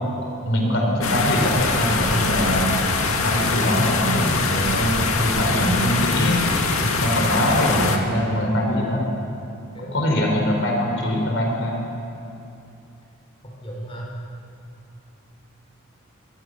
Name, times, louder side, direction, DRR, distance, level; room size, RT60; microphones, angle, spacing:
voice 1, 0.5-2.8 3.2-6.4 7.0-9.0 9.9-11.8, equal, 60° left, 0 dB, 4.4 m, -22 dB
sound 1, 1.0-8.0, left 3 dB, 80° left, 2.2 m, -23 dB
voice 2, 13.4-14.1, right 1 dB, 25° left, -3 dB, 4.4 m, -37 dB
25.0 x 24.0 x 6.7 m, 2.7 s
head